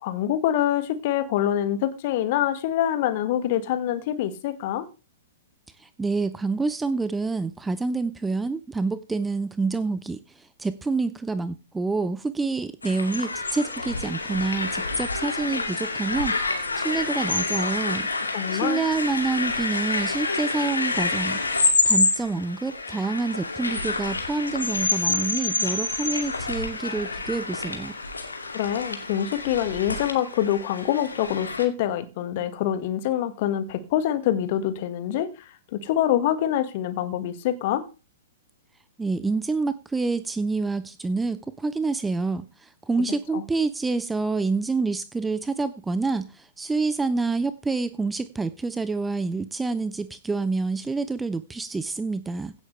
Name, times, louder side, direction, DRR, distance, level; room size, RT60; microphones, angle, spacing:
voice 1, 0.0-4.9 18.3-18.8 28.5-35.3 35.7-37.8 43.3-43.4, left 11 dB, 45° left, 1.7 m, -25 dB
voice 2, 5.8-16.3 16.8-18.1 18.5-27.9 39.0-52.5, right 3 dB, 10° right, 0.6 m, -27 dB
sound 1, 12.8-31.6, left 3 dB, 75° left, 2.4 m, -28 dB
16.5 x 8.3 x 3.4 m
figure-of-eight pair, 110°, 0 cm